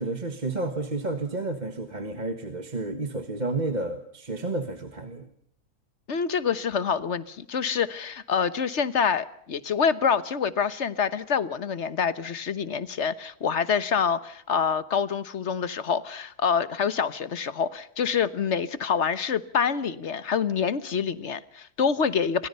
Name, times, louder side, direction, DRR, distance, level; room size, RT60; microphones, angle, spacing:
voice 1, 0.0-5.3, right 2 dB, 30° right, 7 dB, 1.6 m, -31 dB
voice 2, 6.1-22.5, left 6 dB, 50° left, 15 dB, 1.4 m, -26 dB
28.5 x 24.5 x 5.5 m, 0.66 s
omnidirectional pair, 1.6 m